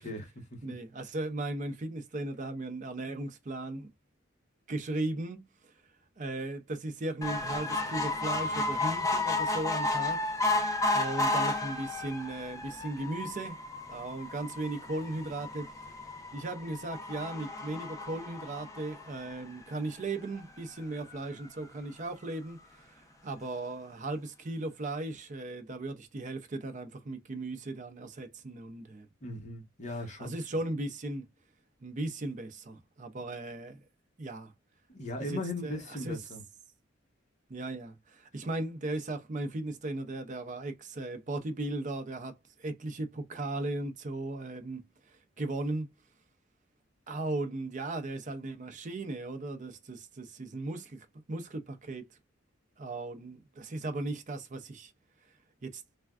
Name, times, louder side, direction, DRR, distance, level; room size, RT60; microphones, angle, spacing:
voice 1, 0.0-0.8 29.2-30.3 34.9-36.4, left 1 dB, 35° left, 0.9 m, -38 dB
voice 2, 0.6-3.9 4.7-5.7 6.2-13.6 13.9-15.7 16.3-22.8 23.2-29.1 30.2-31.3 31.8-33.8 34.2-34.5 35.6-35.8 36.0-36.2 37.5-42.3 42.6-44.8 45.1-45.9 47.1-52.0 52.8-54.9 55.6-55.8, right 2 dB, 40° right, 0.5 m, -37 dB
sound 1, 7.2-19.8 20.4-20.5 20.8-20.9 21.1-21.2, left 2 dB, 15° left, 0.5 m, -33 dB
3.3 x 2.2 x 2.3 m
head